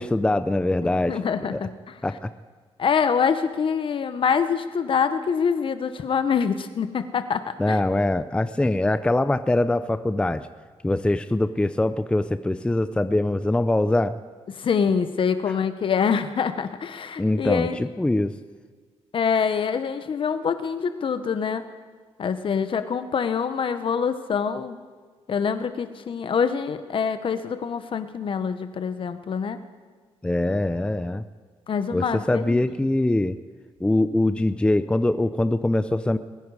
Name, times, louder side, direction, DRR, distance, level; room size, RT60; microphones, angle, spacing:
voice 1, 0.0-1.2 1.5-1.6 2.0-2.3 7.6-10.4 10.8-14.2 17.2-18.3 30.2-31.2 31.9-33.4 33.8-36.2, left 1 dB, 10° left, 12 dB, 0.5 m, -23 dB
voice 2, 0.8-1.7 2.8-7.8 14.6-17.8 19.1-21.7 22.2-24.8 25.3-29.6 31.7-32.6, left 6 dB, 55° left, 11 dB, 1.0 m, -25 dB
21.5 x 10.0 x 4.9 m, 1.5 s
cardioid pair, 90°, 11 cm